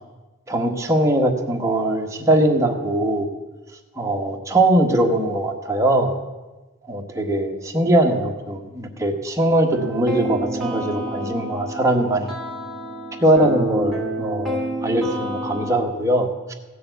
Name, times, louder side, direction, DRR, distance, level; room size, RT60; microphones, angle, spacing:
voice 1, 0.5-3.3 4.0-6.1 6.9-12.3 13.2-16.5, right 1 dB, 15° right, 2 dB, 1.2 m, -21 dB
sound 1, 9.7-15.8, right 1 dB, ahead, 2.4 m, -29 dB
15.5 x 6.9 x 7.9 m, 1.2 s
head